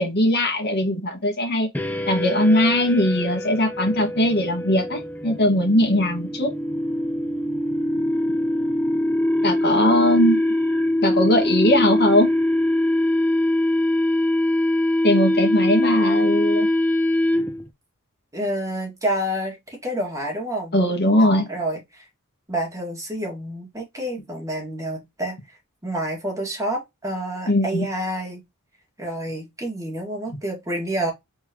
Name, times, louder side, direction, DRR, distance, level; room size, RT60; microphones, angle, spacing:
voice 1, 0.0-1.7 2.1-6.5 9.4-10.4 11.0-12.3 15.0-16.7 20.7-21.5 27.5-27.9, left 1 dB, 50° left, 1.8 m, -20 dB
sound 1, 1.7-17.7, left 1 dB, 10° left, 0.6 m, -23 dB
voice 2, 18.3-20.8 21.2-22.1 22.5-25.6 25.8-28.4 29.0-31.1, right 1 dB, 15° right, 2.2 m, -28 dB
4.4 x 3.9 x 3.0 m
head